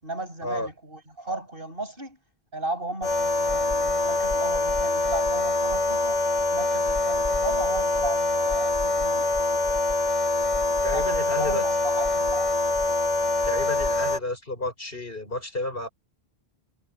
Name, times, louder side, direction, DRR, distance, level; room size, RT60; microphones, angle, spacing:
voice 1, 0.0-2.2 2.5-6.2 6.5-9.3 10.9-12.7, right 2 dB, 60° right, 7.9 m, -35 dB
sound 1, 3.0-14.2, left 2 dB, 45° left, 1.3 m, -24 dB
voice 2, 10.8-11.6 13.4-15.9, left 1 dB, 60° left, 5.8 m, -31 dB
omnidirectional pair, 1.1 m